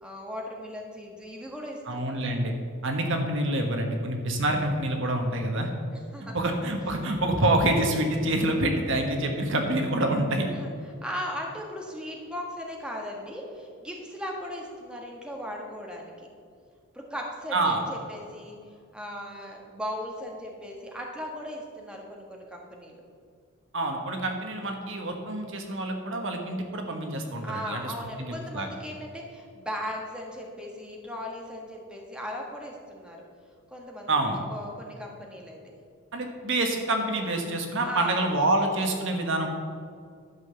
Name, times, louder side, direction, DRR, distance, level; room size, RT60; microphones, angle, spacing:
voice 1, 0.0-2.2 5.9-6.4 10.5-16.3 16.9-18.6 18.9-23.0 27.4-33.3 33.7-35.7 37.8-38.2, equal, 5° right, -1 dB, 1.4 m, -37 dB
voice 2, 1.9-2.5 2.8-5.7 6.3-10.5 17.5-17.8 23.7-27.9 28.2-28.7 34.1-34.4 36.1-39.5, right 1 dB, 60° right, 3 dB, 1.3 m, -27 dB
12.0 x 5.7 x 6.9 m, 2.2 s
head